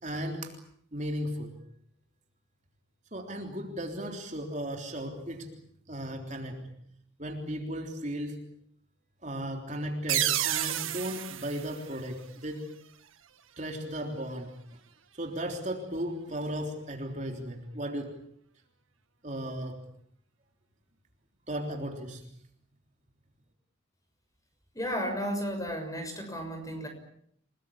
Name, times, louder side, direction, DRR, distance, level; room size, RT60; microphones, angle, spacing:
voice 1, 0.0-0.6 0.9-1.5 3.1-5.5 5.9-6.7 7.2-8.4 9.2-12.7 13.6-14.5 15.1-18.2 19.2-19.8 21.5-22.2, equal, 35° right, 3 dB, 3.5 m, -35 dB
sound 1, 10.1-12.7, right 12 dB, 85° right, 1.8 m, -31 dB
voice 2, 24.7-26.9, equal, 15° left, 6 dB, 6.4 m, -33 dB
29.5 x 20.0 x 8.6 m, 0.70 s
head